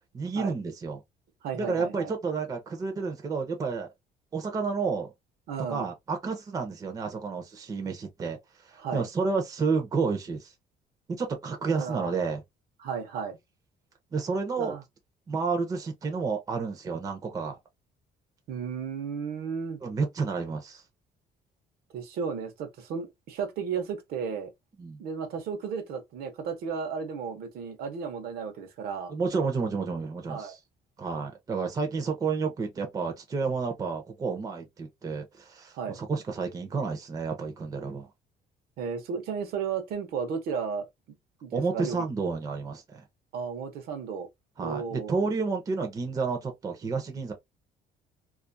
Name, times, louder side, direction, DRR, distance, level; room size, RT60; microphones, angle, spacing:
voice 1, 0.1-1.0 1.5-3.9 4.3-5.1 5.7-8.4 8.9-10.5 11.2-12.4 14.1-14.7 15.3-17.6 19.8-20.8 24.8-25.0 29.1-30.6 31.0-38.1 41.5-43.0 44.6-47.3, right 4 dB, 20° right, 0.5 m, -30 dB
voice 2, 1.4-2.1 5.5-5.9 8.8-9.1 11.7-12.1 12.8-13.4 14.6-14.8 18.5-19.8 21.9-24.5 25.0-29.1 30.3-30.6 35.7-36.0 38.8-40.9 41.4-42.0 43.3-44.3 44.6-45.3, right 6 dB, 65° right, 0.8 m, -34 dB
2.5 x 2.4 x 2.5 m
cardioid pair, 165°, 17 cm